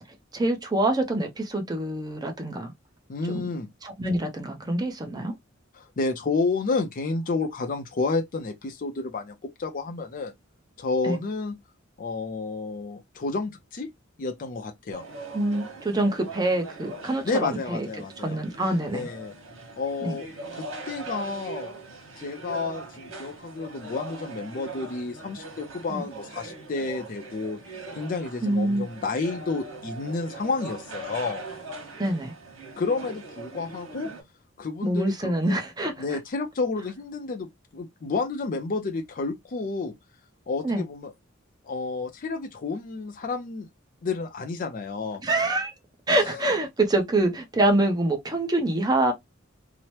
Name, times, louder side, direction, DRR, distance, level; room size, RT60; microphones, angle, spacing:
voice 1, 0.3-2.7 3.3-3.5 3.8-5.3 11.0-11.2 15.3-17.9 18.2-19.1 20.0-20.2 25.9-26.1 28.4-28.8 32.0-32.3 34.8-35.9 40.6-40.8 45.2-45.7 46.1-49.1, right 1 dB, 20° right, 0.6 m, -25 dB
voice 2, 3.1-3.7 5.7-10.3 10.8-11.5 12.0-13.9 14.2-15.1 17.2-18.4 18.9-19.3 19.8-20.3 20.5-21.7 22.2-31.4 32.8-34.1 34.6-35.6 36.0-39.9 40.5-41.1 41.6-43.7 44.0-45.2 46.1-46.5, left 3 dB, 45° left, 0.4 m, -30 dB
sound 1, 14.9-34.2, right 3 dB, 85° right, 1.2 m, -41 dB
2.9 x 2.0 x 3.0 m
head